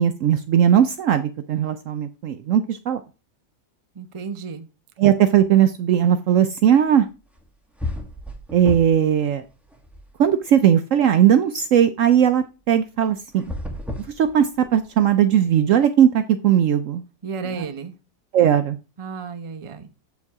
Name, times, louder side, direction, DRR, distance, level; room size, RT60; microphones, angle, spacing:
voice 1, 0.0-3.0 5.0-7.1 8.5-9.4 10.2-13.4 14.0-17.0 17.5-17.6 18.3-18.8, right 9 dB, 70° right, 10 dB, 0.8 m, -18 dB
voice 2, 3.9-4.7 17.2-17.9 19.0-19.9, right 5 dB, 35° right, 8 dB, 0.4 m, -33 dB
sound 1, 7.4-7.5 7.8-9.1 9.4-10.5 13.3-14.9, left 1 dB, ahead, 1.0 m, -33 dB
7.4 x 5.3 x 4.7 m, 0.31 s
omnidirectional pair, 1.7 m